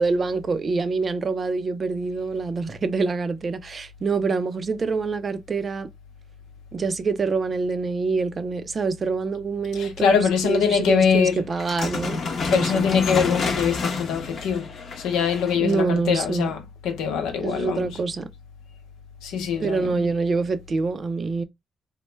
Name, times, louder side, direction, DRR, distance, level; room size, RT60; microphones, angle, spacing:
voice 1, 0.0-5.9 6.7-12.8 15.6-16.5 17.4-18.3 19.6-21.4, right 4 dB, 40° right, 0.4 m, -26 dB
voice 2, 9.7-11.5 12.5-14.7 15.0-18.0 19.2-20.0, left 7 dB, 90° left, 0.7 m, -23 dB
sound 1, 11.5-15.7, left 4 dB, 55° left, 0.7 m, -28 dB
3.1 x 2.1 x 3.2 m
cardioid pair, 90°, 0 cm